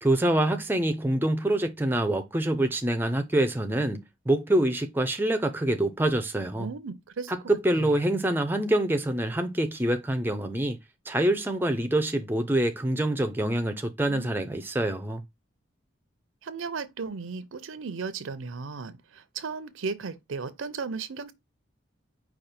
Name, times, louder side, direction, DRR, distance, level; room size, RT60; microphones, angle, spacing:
voice 1, 0.0-6.7 7.3-10.8 11.1-15.2, right 1 dB, 10° right, 0.4 m, -26 dB
voice 2, 6.6-7.3 7.8-7.9 16.4-21.3, right 4 dB, 85° right, 0.6 m, -36 dB
5.0 x 2.3 x 4.2 m
head